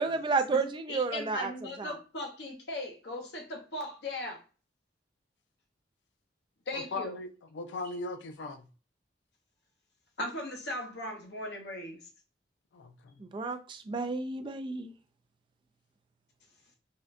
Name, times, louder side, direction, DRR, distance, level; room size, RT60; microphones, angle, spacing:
voice 1, 0.0-1.5 1.8-1.9 13.2-14.9, right 4 dB, 30° right, 0.3 m, -31 dB
voice 2, 0.5-4.4 6.7-7.1 10.2-12.1, left 1 dB, 65° left, 0.8 m, -38 dB
voice 3, 6.7-8.7 12.7-13.1, left 2 dB, 85° left, 0.4 m, -39 dB
3.6 x 2.2 x 2.5 m
head